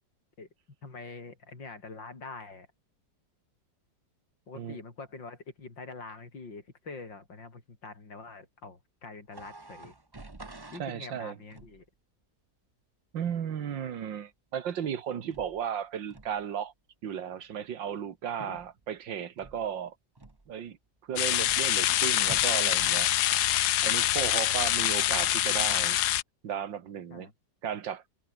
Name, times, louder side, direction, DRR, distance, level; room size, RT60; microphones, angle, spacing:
voice 1, 0.8-2.7 4.5-9.9 10.7-11.8 18.4-18.6 24.2-24.5 27.1-27.3, left 3 dB, 85° left, 5.0 m, -45 dB
sound 1, 9.3-10.9 11.5-11.9 15.3-15.7 16.1-16.4 18.5-18.9 19.4-19.8 20.2-20.7 21.4-21.8 22.2-24.2, right 2 dB, 15° right, 1.0 m, -49 dB
voice 2, 10.8-11.4 13.1-16.7 17.0-20.0 20.5-20.8 21.0-23.1 23.8-26.0 26.4-27.3 27.6-28.0, right 8 dB, 85° right, 2.2 m, -35 dB
sound 2, 21.2-26.2, left 13 dB, 70° left, 1.2 m, -25 dB
omnidirectional pair, 2.0 m